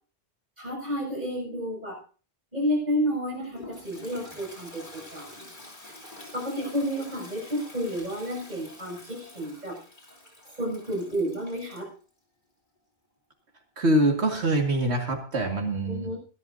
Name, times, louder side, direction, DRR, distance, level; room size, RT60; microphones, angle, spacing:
voice 1, 0.6-2.0 2.5-5.5 6.3-9.8 10.5-11.9 15.9-16.2, equal, 40° right, -1 dB, 7.5 m, -31 dB
Toilet flush, 3.3-11.9, left 1 dB, 50° left, 3.7 m, -47 dB
voice 2, 13.8-16.1, right 1 dB, 90° right, 1 dB, 2.5 m, -24 dB
21.5 x 12.0 x 2.8 m, 0.37 s
omnidirectional pair, 1.1 m